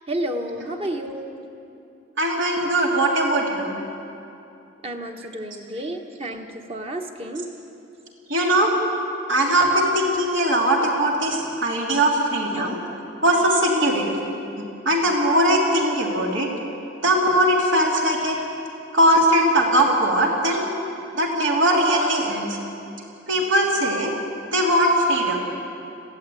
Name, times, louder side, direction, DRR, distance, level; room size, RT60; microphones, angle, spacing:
voice 1, 0.0-1.4 4.8-7.5 12.5-12.7, right 1 dB, 30° right, 3 dB, 1.4 m, -31 dB
voice 2, 2.2-3.8 8.3-8.7 9.3-12.8 13.2-14.2 14.8-16.5 17.0-18.4 18.9-20.7 21.1-22.6 23.3-24.1 24.5-25.5, right 1 dB, 75° right, -1 dB, 3.1 m, -20 dB
21.5 x 16.0 x 8.6 m, 2.8 s
head